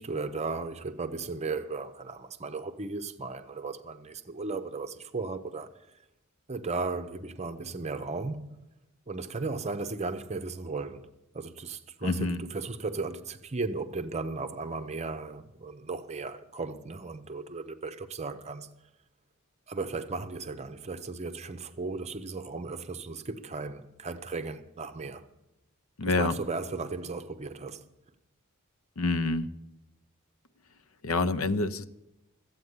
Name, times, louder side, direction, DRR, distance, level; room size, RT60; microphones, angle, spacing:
voice 1, 0.0-5.7 6.5-8.5 9.1-11.1 11.3-18.7 19.7-25.2 26.2-27.9, right 3 dB, 30° right, 0.8 m, -36 dB
voice 2, 12.0-12.5 26.0-26.4 29.0-29.5 31.0-31.9, left 3 dB, 70° left, 0.7 m, -27 dB
13.5 x 8.6 x 9.6 m
head